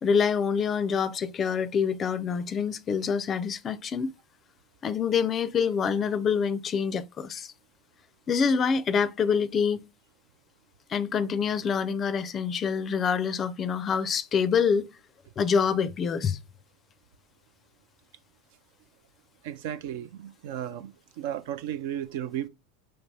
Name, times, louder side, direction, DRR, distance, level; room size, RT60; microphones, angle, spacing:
voice 1, 0.0-4.1 4.8-7.5 8.3-9.9 10.9-14.9 15.4-16.4, left 6 dB, 35° left, 0.4 m, -26 dB
voice 2, 19.4-22.5, right 11 dB, 65° right, 0.4 m, -34 dB
5.2 x 2.8 x 3.3 m
hypercardioid pair, 95°, 0 cm